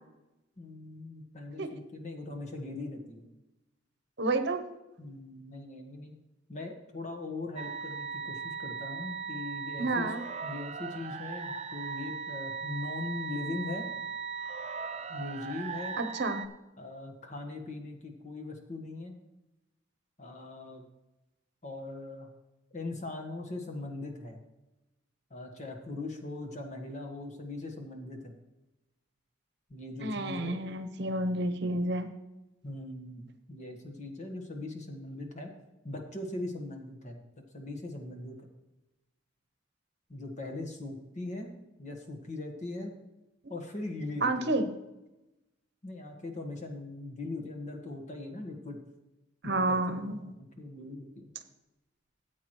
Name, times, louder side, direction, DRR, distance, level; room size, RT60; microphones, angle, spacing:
voice 1, 0.6-3.3 5.0-6.2 6.5-10.1 10.4-13.9 15.1-16.0 16.8-19.2 20.2-20.8 21.6-22.3 22.7-24.4 25.3-28.3 29.7-30.6 32.6-35.5 35.8-37.2 37.5-38.4 40.1-41.5 41.8-42.9 43.5-44.6 45.8-48.8 49.4-51.3, left 2 dB, 40° left, 4 dB, 1.5 m, -40 dB
voice 2, 4.2-4.6 9.8-10.2 16.0-16.4 30.0-32.1 44.2-44.7 49.4-50.2, right 2 dB, 65° right, 9 dB, 0.9 m, -30 dB
sound 1, 7.6-16.5, right 5 dB, 35° right, 0.5 m, -38 dB
13.5 x 8.3 x 3.1 m, 0.99 s
head